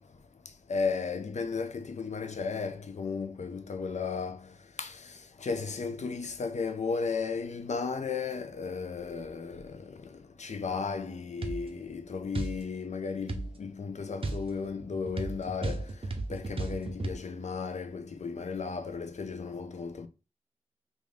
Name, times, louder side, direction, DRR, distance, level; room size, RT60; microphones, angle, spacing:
voice 1, 0.7-4.5 4.8-5.1 5.4-15.9 16.3-20.1, left 5 dB, 65° left, 0.5 m, -34 dB
sound 1, 11.4-11.6 12.3-12.6 13.3-13.5 14.2-17.2, right 2 dB, 45° right, 0.6 m, -34 dB
3.4 x 2.5 x 3.4 m
cardioid pair, 50°, 13 cm